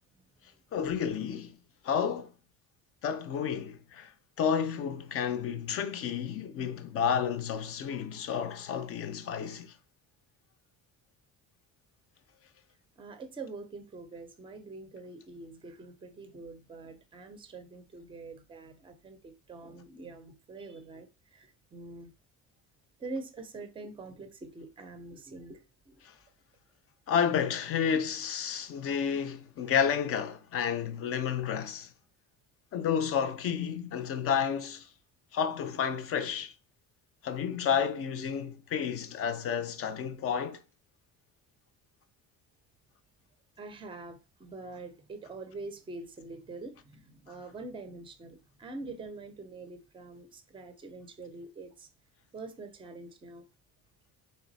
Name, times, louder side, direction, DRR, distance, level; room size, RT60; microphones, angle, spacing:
voice 1, 0.7-1.6 1.8-2.3 3.0-4.1 4.4-9.7 26.0-26.1 27.1-31.9 32.7-34.9 35.3-36.5 37.2-40.6, left 7 dB, 45° left, 0.5 m, -31 dB
voice 2, 13.0-22.1 23.0-26.0 27.9-28.0 28.6-28.7 43.6-51.9 52.3-53.5, right 3 dB, 15° right, 0.5 m, -45 dB
4.0 x 3.3 x 4.0 m
cardioid pair, 180°, 34 cm